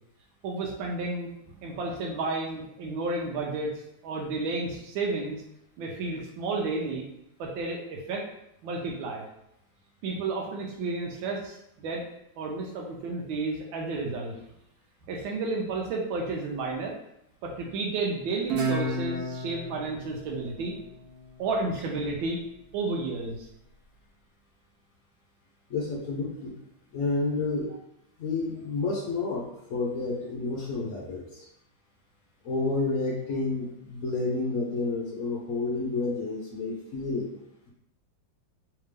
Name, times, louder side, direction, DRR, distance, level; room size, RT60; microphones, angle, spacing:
voice 1, 0.4-1.3 1.6-3.7 4.0-5.4 5.8-7.1 7.4-8.2 8.6-9.2 10.0-12.0 12.4-14.3 15.0-16.9 17.4-20.7 21.4-22.4 22.7-23.5, right 3 dB, 90° right, -1 dB, 1.4 m, -31 dB
Guitar, 18.5-21.7, right 2 dB, 65° right, 1.1 m, -33 dB
voice 2, 25.7-26.5 26.9-27.8 28.2-31.5 32.4-37.7, left 3 dB, 65° left, -2 dB, 0.8 m, -30 dB
3.4 x 3.2 x 3.3 m, 0.81 s
omnidirectional pair, 2.1 m